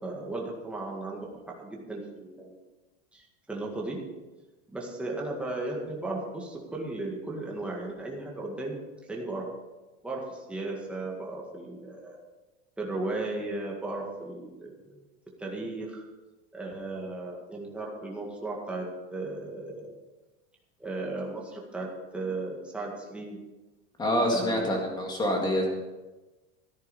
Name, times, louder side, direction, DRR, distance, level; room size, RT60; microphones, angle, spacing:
voice 1, 0.0-2.6 3.1-4.0 4.7-8.8 9.1-9.5 10.0-12.2 12.8-15.0 15.4-16.0 16.5-18.9 19.1-19.9 20.8-23.4 24.3-24.9, right 2 dB, 5° right, -2 dB, 1.8 m, -35 dB
voice 2, 24.0-25.7, equal, 10° left, 1 dB, 2.1 m, -26 dB
13.5 x 10.5 x 5.3 m, 1.1 s
supercardioid pair, 175°, 35 cm